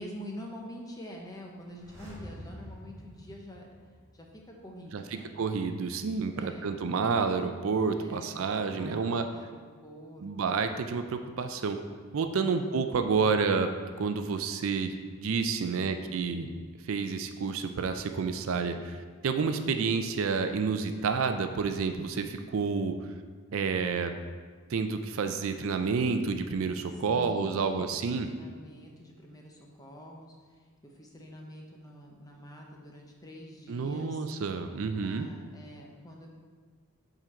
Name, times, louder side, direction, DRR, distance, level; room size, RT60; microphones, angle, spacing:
voice 1, 0.0-3.7 4.1-5.3 6.4-6.8 8.0-9.6 9.8-10.2 12.4-13.0 15.6-16.1 27.1-30.3 30.8-34.2 35.0-36.3, equal, 15° left, 0 dB, 0.7 m, -46 dB
sound 1, 1.7-4.5 4.8-4.9, equal, 15° right, 1.6 m, -47 dB
voice 2, 4.9-9.3 10.2-11.8 12.1-13.7 14.0-16.5 16.8-19.0 19.2-23.0 23.5-24.1 24.7-28.3 33.7-35.3, right 5 dB, 60° right, 7 dB, 0.4 m, -29 dB
7.4 x 3.8 x 4.4 m, 1.6 s
head